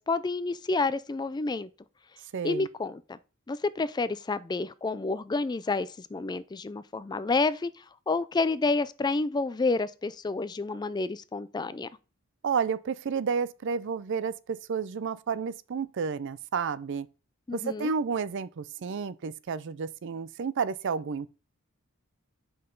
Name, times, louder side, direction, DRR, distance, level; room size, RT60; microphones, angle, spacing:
voice 1, 0.0-1.7 2.4-3.2 3.5-11.9 17.5-17.9, left 3 dB, 20° left, 0.3 m, -29 dB
voice 2, 2.3-2.7 12.4-17.1 17.5-21.4, right 6 dB, 55° right, 0.4 m, -31 dB
7.7 x 5.5 x 3.8 m
head